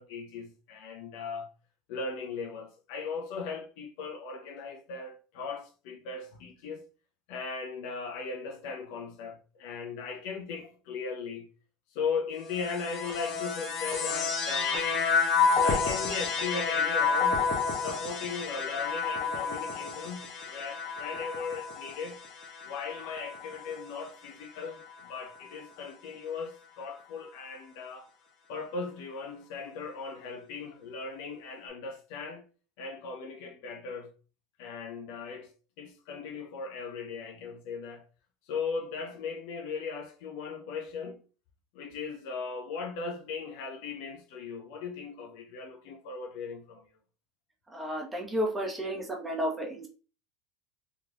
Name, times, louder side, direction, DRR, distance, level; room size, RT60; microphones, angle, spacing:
voice 1, 0.0-1.5 1.9-6.8 7.3-11.5 11.9-14.9 15.6-17.4 17.8-22.2 22.6-28.1 28.5-32.4 32.8-34.1 34.6-38.0 38.5-41.2 41.7-46.9, left 5 dB, 70° left, 0.6 m, -38 dB
sound 1, 12.5-24.0 24.7-25.5, left 5 dB, 50° left, 1.0 m, -30 dB
voice 2, 47.7-49.9, equal, 15° right, 1.0 m, -32 dB
3.5 x 3.0 x 2.4 m
supercardioid pair, 110°, 0 cm